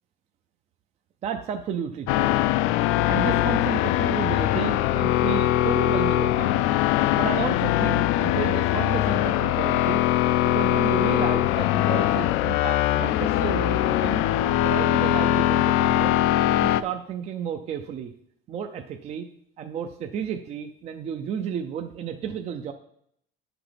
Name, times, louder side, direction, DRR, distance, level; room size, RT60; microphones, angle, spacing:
voice 1, 1.2-2.4 3.1-6.7 7.1-10.0 10.4-14.2 14.6-16.2 16.6-18.1 18.5-19.3 19.6-22.7, right 8 dB, 30° right, 6 dB, 0.5 m, -32 dB
sound 1, 2.1-16.8, left 13 dB, 80° left, 0.5 m, -22 dB
9.7 x 6.0 x 5.1 m, 0.70 s
cardioid pair, 180°, 21 cm